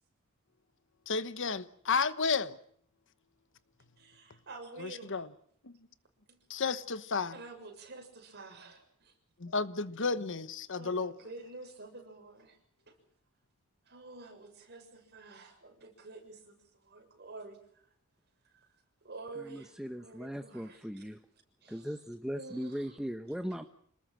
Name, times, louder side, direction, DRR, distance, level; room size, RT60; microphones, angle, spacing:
voice 1, 1.1-2.6 4.8-5.3 5.6-5.7 6.5-7.4 9.4-11.1, left 4 dB, 60° left, 1.2 m, -32 dB
voice 2, 4.0-5.3 6.3-6.4 7.3-9.1 9.5-9.6 10.8-12.6 12.9-13.0 13.9-17.8 18.4-18.5 19.0-21.1 21.6-22.0 22.3-22.9, right 3 dB, 50° right, 6.9 m, -49 dB
voice 3, 19.4-21.2 21.7-23.6, equal, 5° right, 1.0 m, -39 dB
27.5 x 20.0 x 7.7 m
head